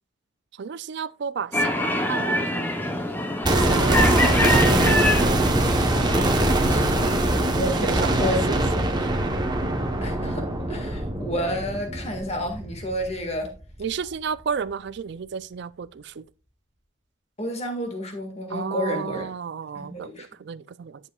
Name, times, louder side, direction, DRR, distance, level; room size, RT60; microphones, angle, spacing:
voice 1, 0.6-2.7 3.5-5.3 7.8-8.2 8.5-8.6 13.8-16.2 18.5-21.0, right 6 dB, 55° right, 0.4 m, -32 dB
sound 1, 1.5-7.2, left 1 dB, 10° left, 0.7 m, -25 dB
sound 2, 3.4-13.5 13.7-13.8, right 1 dB, 20° right, 1.0 m, -22 dB
voice 2, 7.6-8.5 10.0-13.5 17.4-19.3 19.7-20.3, equal, 30° left, 1.8 m, -30 dB
11.0 x 7.3 x 2.3 m
head